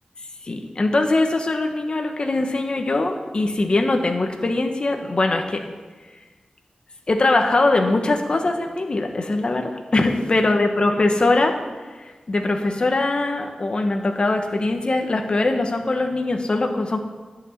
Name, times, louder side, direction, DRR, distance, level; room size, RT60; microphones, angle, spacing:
voice 1, 0.4-5.6 7.1-11.6 12.0-17.0, left 2 dB, 45° left, 4 dB, 1.2 m, -21 dB
11.0 x 6.1 x 8.4 m, 1.3 s
wide cardioid pair, 115°, 2 cm